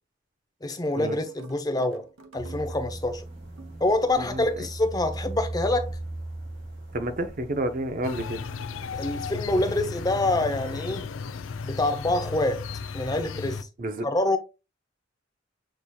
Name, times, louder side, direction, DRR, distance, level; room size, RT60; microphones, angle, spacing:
voice 1, 0.6-2.0 2.3-3.2 3.8-6.0 8.9-11.1 11.6-12.7 12.9-13.7 14.0-14.4, left 2 dB, 20° left, 0.6 m, -26 dB
sound 1, 0.8-3.1 3.6-4.0, right 3 dB, 80° right, 0.8 m, -49 dB
sound 2, 2.4-10.8, right 1 dB, 65° right, 1.9 m, -39 dB
voice 2, 6.9-8.4 13.8-14.0, right 1 dB, 45° right, 0.6 m, -29 dB
sound 3, 8.0-13.6, left 5 dB, 85° left, 0.4 m, -35 dB
6.4 x 2.8 x 2.2 m
head